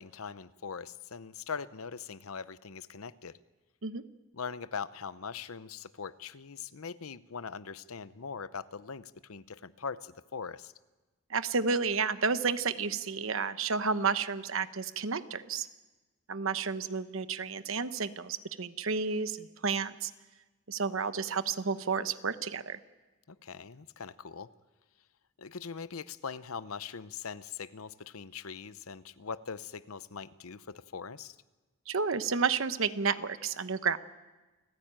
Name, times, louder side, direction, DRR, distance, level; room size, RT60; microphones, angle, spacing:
voice 1, 0.0-3.4 4.3-10.7 23.3-24.5 25.4-31.4, left 6 dB, 90° left, 15 dB, 0.8 m, -41 dB
voice 2, 11.3-15.7 16.3-20.1 20.7-22.8 31.9-34.0, right 5 dB, 70° right, 12 dB, 1.0 m, -31 dB
29.0 x 15.0 x 8.9 m, 1.2 s
head